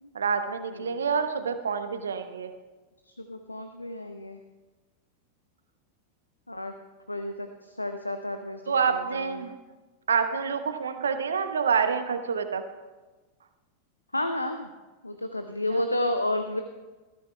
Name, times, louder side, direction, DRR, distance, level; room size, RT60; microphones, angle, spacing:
voice 1, 0.1-2.5 8.7-9.5 10.1-12.6 15.7-15.8, right 6 dB, 70° right, 9 dB, 1.0 m, -27 dB
voice 2, 0.7-1.0 3.0-4.4 6.5-6.8 7.1-9.5 14.1-14.7 15.0-16.6, left 1 dB, 85° left, 8 dB, 0.6 m, -31 dB
19.5 x 14.0 x 2.3 m, 1.2 s
figure-of-eight pair, 90°, 0 cm